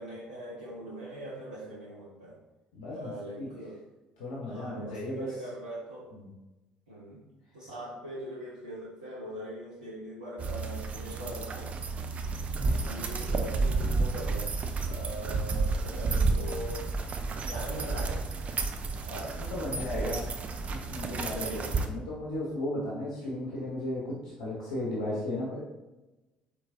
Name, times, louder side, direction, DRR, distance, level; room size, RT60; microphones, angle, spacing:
voice 1, 0.0-2.4 2.9-3.8 4.4-6.1 6.9-7.2 7.5-11.7 12.6-14.5 14.8-16.8 17.4-18.2 19.0-20.3 21.3-21.7, right 1 dB, 80° right, -8 dB, 0.7 m, -41 dB
voice 2, 2.7-3.5 4.2-5.3 6.1-6.3 12.5-13.0 19.3-20.2 20.7-25.6, left 1 dB, 70° left, -6 dB, 0.8 m, -35 dB
sound 1, 10.4-21.9, right 3 dB, 35° right, 0.4 m, -31 dB
4.5 x 3.0 x 2.7 m, 1.0 s
figure-of-eight pair, 55°, 4 cm